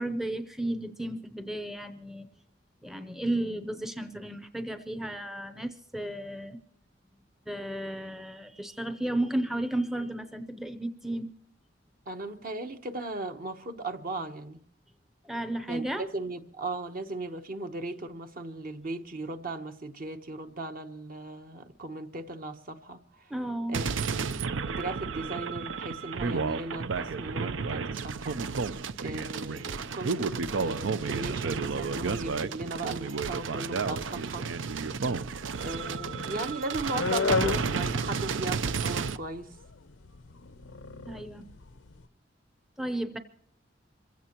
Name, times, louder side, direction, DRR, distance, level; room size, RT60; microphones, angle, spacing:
voice 1, 0.0-2.3 2.8-6.6 7.5-11.3 15.2-16.0 23.3-23.8 41.1-41.5 42.8-43.2, right 1 dB, ahead, 0.6 m, -33 dB
voice 2, 12.1-14.6 15.7-23.3 23.7-23.9 24.2-24.4 24.7-28.4 29.0-34.5 35.6-39.6, right 2 dB, 50° right, 1.0 m, -37 dB
sound 1, 23.7-39.2, right 5 dB, 85° right, 0.5 m, -32 dB
sound 2, 35.8-42.0, left 4 dB, 90° left, 0.7 m, -33 dB
26.5 x 16.0 x 3.0 m
head